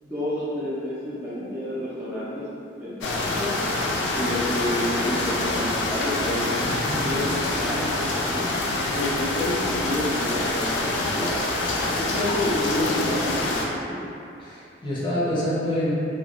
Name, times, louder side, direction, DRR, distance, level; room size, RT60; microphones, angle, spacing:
voice 1, 0.0-2.4 2.8-3.6 4.2-8.5 8.9-11.5 11.9-14.0, left 1 dB, 10° right, -11 dB, 0.4 m, -29 dB
sound 1, 3.0-13.7, left 2 dB, 90° left, 0.4 m, -26 dB
voice 2, 6.6-7.0 14.4-15.9, equal, 30° left, -9 dB, 0.6 m, -27 dB
3.2 x 2.2 x 2.3 m, 2.6 s
head